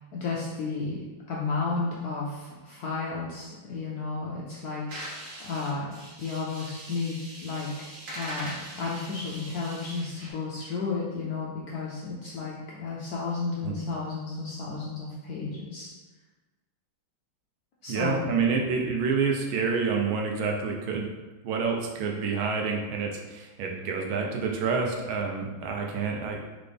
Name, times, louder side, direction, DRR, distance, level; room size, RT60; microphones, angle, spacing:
voice 1, 0.1-1.0 1.3-5.9 6.2-7.7 8.1-15.9 17.8-18.2, left 4 dB, 70° left, -4 dB, 0.9 m, -33 dB
sound 1, 4.9-10.3, right 1 dB, 60° right, 1.8 m, -42 dB
voice 2, 17.9-21.1 21.4-26.4, right 5 dB, 85° right, 1 dB, 1.5 m, -28 dB
3.9 x 3.9 x 3.4 m, 1.2 s
omnidirectional pair, 2.2 m